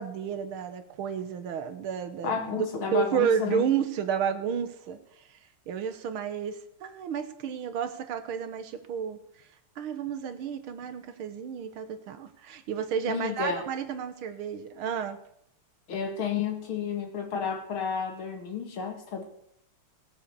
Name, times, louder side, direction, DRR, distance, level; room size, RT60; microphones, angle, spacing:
voice 1, 0.0-5.2 5.7-9.2 9.8-15.2, right 7 dB, 80° right, 10 dB, 1.9 m, -31 dB
voice 2, 2.2-3.7 13.1-13.6 15.9-19.2, left 6 dB, 75° left, 4 dB, 2.8 m, -31 dB
18.0 x 6.7 x 6.9 m, 0.73 s
omnidirectional pair, 2.3 m